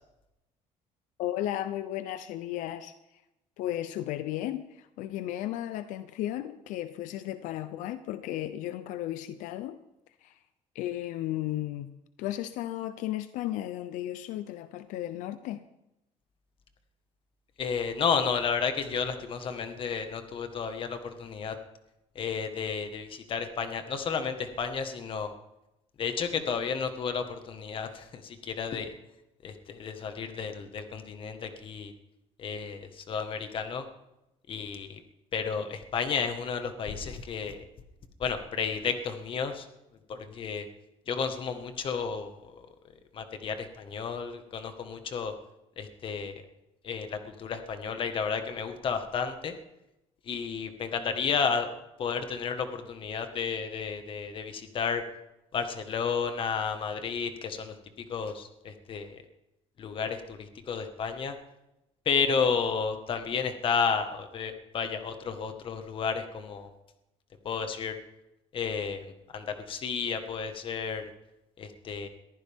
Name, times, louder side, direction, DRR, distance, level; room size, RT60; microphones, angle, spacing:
voice 1, 1.2-2.9 3.6-9.8 10.2-10.4 10.7-15.6, left 13 dB, 85° left, 12 dB, 0.7 m, -34 dB
voice 2, 17.6-21.6 22.1-25.3 26.0-28.9 29.4-31.9 32.4-33.9 34.5-35.0 35.3-37.6 38.2-39.6 40.1-40.7 41.1-42.7 43.1-45.3 45.8-46.3 46.8-49.5 50.3-51.7 52.0-55.0 55.5-57.7 58.1-59.2 59.8-61.3 62.0-66.7 67.4-67.9 68.5-71.1 71.6-72.1, left 6 dB, 45° left, 7 dB, 1.7 m, -32 dB
22.0 x 14.5 x 3.7 m, 0.91 s
cardioid pair, 145°, 13 cm